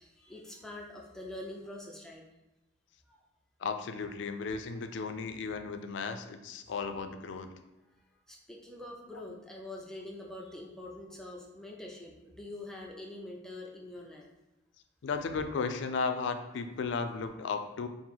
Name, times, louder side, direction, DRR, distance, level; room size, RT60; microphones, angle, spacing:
voice 1, 0.0-2.2 3.1-3.2 8.3-14.2, left 1 dB, 5° left, -2 dB, 0.4 m, -45 dB
voice 2, 3.6-7.5 15.0-17.9, left 4 dB, 70° left, 8 dB, 0.3 m, -35 dB
4.5 x 2.0 x 3.8 m, 0.96 s
head